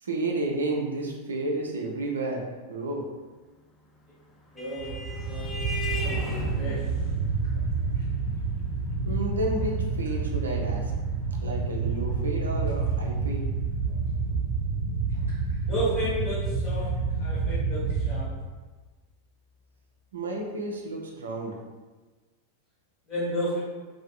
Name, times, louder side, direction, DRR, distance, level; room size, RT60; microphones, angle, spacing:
voice 1, 0.0-3.1 9.0-10.9 11.4-13.4 20.1-21.5, right 2 dB, 70° right, 0 dB, 0.5 m, -31 dB
Vehicle horn car horn honking, 3.9-12.9, left 2 dB, 5° left, 0.4 m, -40 dB
voice 2, 4.5-5.5 6.0-6.2 6.5-6.8 15.7-18.3 23.1-23.6, equal, 30° left, -11 dB, 1.2 m, -32 dB
sound 1, 4.8-18.2, right 4 dB, 80° left, 1.2 m, -28 dB
3.0 x 2.6 x 2.4 m, 1.3 s
figure-of-eight pair, 90°, 0 cm